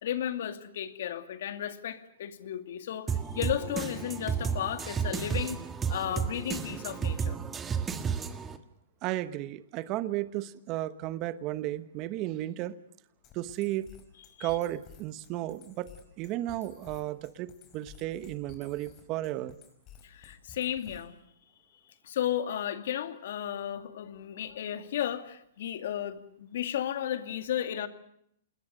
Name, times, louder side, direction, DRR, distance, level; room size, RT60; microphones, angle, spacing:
voice 1, 0.0-5.6 5.9-7.4 14.4-14.5 20.0-21.1 22.0-27.9, left 10 dB, 65° left, 9 dB, 2.3 m, -34 dB
sound 1, 3.1-8.6, right 7 dB, 15° right, 1.7 m, -32 dB
voice 2, 9.0-12.8 13.3-13.9 14.4-15.9 16.2-19.6, right 15 dB, 35° right, 14 dB, 1.1 m, -34 dB
sound 2, 13.2-21.2, left 7 dB, 30° left, 5.6 m, -54 dB
27.5 x 21.0 x 6.5 m, 0.73 s
hypercardioid pair, 135°, 0 cm